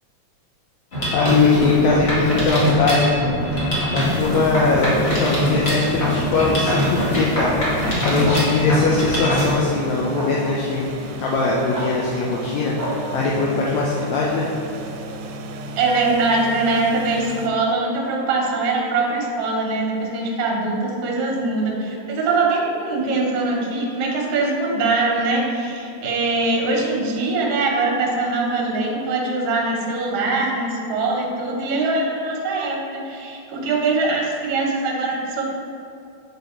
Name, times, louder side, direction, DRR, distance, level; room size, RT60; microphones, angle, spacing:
Mechanisms, 0.9-9.5, equal, 40° left, 0.9 m, -22 dB
voice 1, 1.1-3.1 3.9-7.6 8.1-10.9 11.2-14.5, left 3 dB, 75° left, -4 dB, 1.8 m, -21 dB
sound 1, 4.0-17.5, right 1 dB, 85° right, 2.0 m, -35 dB
sound 2, 7.4-7.5 8.2-8.4 9.2-9.3 10.1-10.3 11.7-11.9 12.8-12.9, right 1 dB, 30° right, 1.1 m, -29 dB
voice 2, 15.8-35.5, right 3 dB, 70° right, -1 dB, 2.2 m, -22 dB
7.1 x 4.0 x 4.2 m, 2.7 s
omnidirectional pair, 3.4 m